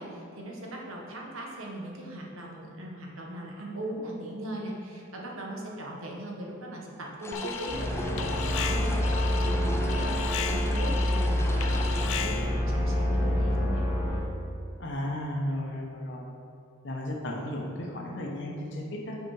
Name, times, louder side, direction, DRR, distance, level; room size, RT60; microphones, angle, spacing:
voice 1, 0.0-13.8, right 1 dB, 85° right, -1 dB, 1.3 m, -39 dB
sound 1, 7.2-12.2, left 2 dB, 15° left, 0.3 m, -40 dB
Alarm, 7.3-7.9 8.2-12.6, left 7 dB, 85° left, 0.5 m, -35 dB
sound 2, 7.7-14.2, equal, 15° right, 1.7 m, -27 dB
voice 2, 14.8-16.2 16.8-19.2, left 1 dB, 60° left, -1 dB, 1.0 m, -34 dB
6.9 x 5.1 x 4.9 m, 2.7 s
head